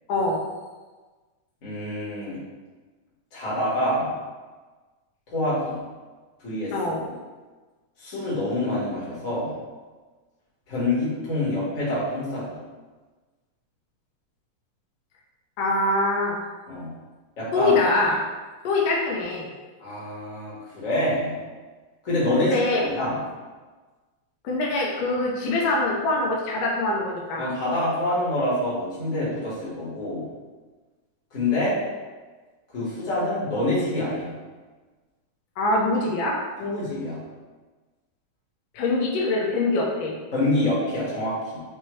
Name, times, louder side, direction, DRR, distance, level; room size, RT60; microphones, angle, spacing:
voice 1, 0.1-0.4 6.7-7.0 15.6-16.4 17.5-18.2 18.6-19.5 22.4-22.8 24.4-27.4 35.6-36.4 38.7-40.1, left 2 dB, 70° left, -2 dB, 1.6 m, -23 dB
voice 2, 1.6-2.4 3.3-4.1 5.3-5.8 6.4-7.1 8.0-9.5 10.7-12.5 16.7-16.9 17.4-17.8 19.8-21.3 22.0-22.5 22.8-23.2 27.4-30.2 31.3-31.7 32.7-34.3 36.6-37.2 40.3-41.6, left 1 dB, 35° left, -8 dB, 1.3 m, -26 dB
5.5 x 2.9 x 3.1 m, 1.3 s
omnidirectional pair, 3.5 m